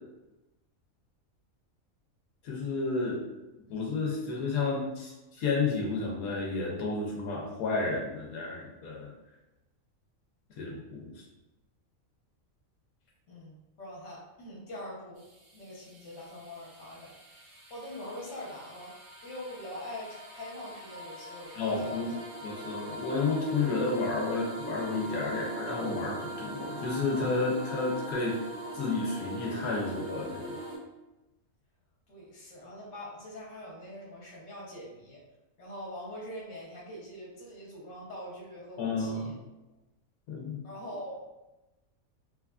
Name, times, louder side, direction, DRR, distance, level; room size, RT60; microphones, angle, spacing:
voice 1, 2.4-3.3 3.7-9.1 10.6-11.2 21.5-22.1 22.4-28.4 28.7-30.6 38.8-39.4 40.3-40.6, left 3 dB, 85° left, -2 dB, 1.1 m, -31 dB
voice 2, 13.3-15.2 15.5-18.9 19.2-22.1 32.1-35.2 35.6-39.3 40.6-41.2, left 1 dB, 60° left, -4 dB, 1.1 m, -43 dB
sound 1, 15.2-30.8, right 2 dB, 50° right, 0.8 m, -41 dB
3.1 x 2.3 x 2.3 m, 1.0 s
omnidirectional pair, 1.5 m